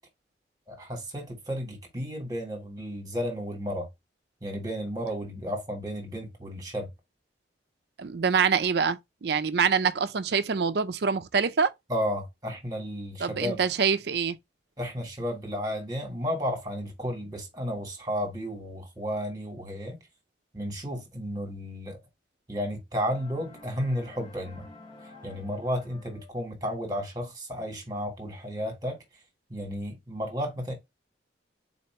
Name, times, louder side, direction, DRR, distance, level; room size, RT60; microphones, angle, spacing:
voice 1, 0.7-3.9 4.4-6.9 11.9-13.6 14.8-20.0 20.5-22.0 22.5-24.7 25.2-29.0 29.5-30.7, equal, 20° right, 1.6 m, -33 dB
voice 2, 8.0-11.7 13.2-14.4, right 6 dB, 60° right, 0.5 m, -25 dB
sound 1, 23.0-26.4, left 2 dB, 25° left, 0.9 m, -50 dB
4.3 x 2.9 x 4.3 m
head